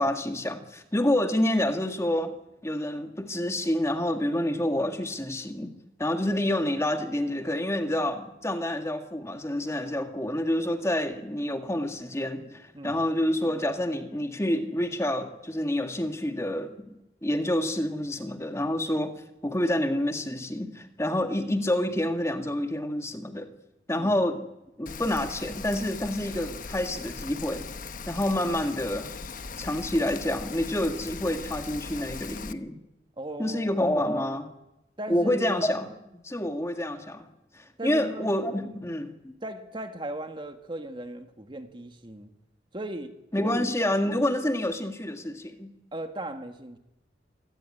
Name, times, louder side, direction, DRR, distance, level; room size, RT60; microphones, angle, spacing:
voice 1, 0.0-2.4 2.6-16.9 17.2-23.5 23.9-24.5 24.8-27.7 28.1-29.1 29.6-32.8 33.4-34.5 35.1-35.9 36.1-37.3 37.5-39.3 43.3-45.7, left 1 dB, 15° left, 6 dB, 1.8 m, -28 dB
Rain, 24.9-32.5, left 4 dB, 50° left, 1.0 m, -39 dB
voice 2, 33.2-33.8 35.0-35.6 37.8-38.3 39.4-42.3 42.7-43.1 43.4-43.5 43.8-44.0 45.9-46.8, right 1 dB, 25° right, 6 dB, 1.9 m, -37 dB
27.0 x 17.5 x 10.0 m, 0.93 s
head